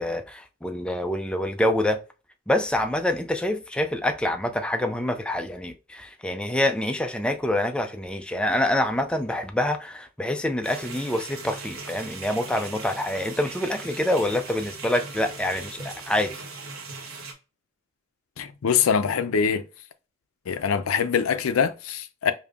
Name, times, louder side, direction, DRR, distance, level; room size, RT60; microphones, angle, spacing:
voice 1, 0.0-2.0 2.5-16.3, left 1 dB, 5° left, 0.4 m, -26 dB
sound 1, 10.6-17.3, right 4 dB, 85° right, 1.0 m, -39 dB
voice 2, 18.4-19.6 20.5-22.3, left 6 dB, 85° left, 0.5 m, -23 dB
5.1 x 2.7 x 2.3 m
head